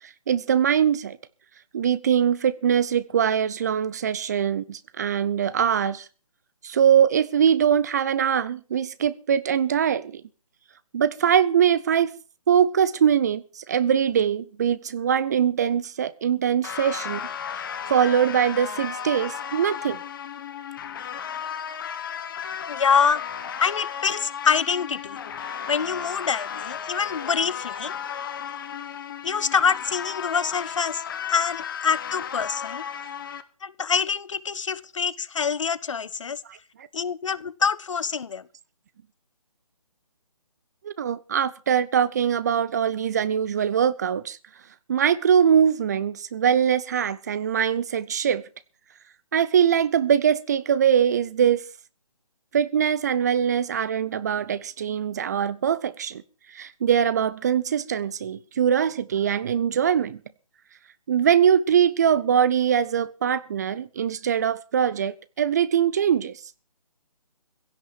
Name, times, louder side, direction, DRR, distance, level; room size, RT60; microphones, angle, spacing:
voice 1, 0.3-1.2 1.7-6.1 6.6-10.2 10.9-12.1 12.5-17.2 17.9-20.0 36.5-36.6 40.8-44.4 44.9-48.4 49.3-51.6 52.5-56.2 56.5-60.2 61.1-66.4, right 8 dB, 25° right, 0.6 m, -22 dB
sound 1, 16.6-33.4, left 8 dB, 35° left, 1.2 m, -34 dB
voice 2, 22.7-23.2 23.6-25.2 25.7-27.9 29.2-32.8 33.6-36.4 36.9-38.4, left 6 dB, 55° left, 0.9 m, -25 dB
16.5 x 5.8 x 9.2 m
figure-of-eight pair, 150°, 19 cm